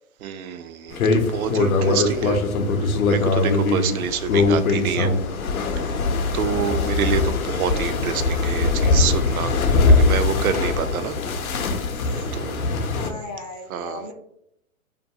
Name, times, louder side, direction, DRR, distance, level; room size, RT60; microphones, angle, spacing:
voice 1, 0.2-2.4 2.8-5.1 5.7-5.9 6.3-9.6 9.8-11.2 11.6-11.8 12.3-12.6 13.7-14.1, right 8 dB, 80° right, 10 dB, 0.5 m, -27 dB
sound 1, 0.9-13.1, left 3 dB, 80° left, 0.6 m, -21 dB
voice 2, 12.9-14.1, left 3 dB, 30° left, 2 dB, 0.4 m, -36 dB
2.5 x 2.3 x 2.7 m, 0.78 s
hypercardioid pair, 125°, 42 cm